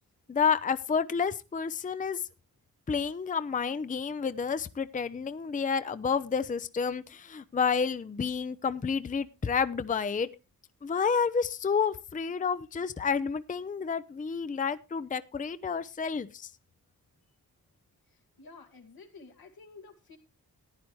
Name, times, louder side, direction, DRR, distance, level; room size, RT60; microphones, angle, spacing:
voice 1, 0.3-2.2 2.9-10.3 10.8-16.5, left 6 dB, 20° left, 13 dB, 0.5 m, -30 dB
voice 2, 18.1-20.2, left 4 dB, 85° left, 3 dB, 2.1 m, -52 dB
14.5 x 10.0 x 3.1 m, 0.28 s
wide cardioid pair, 80°, 36 cm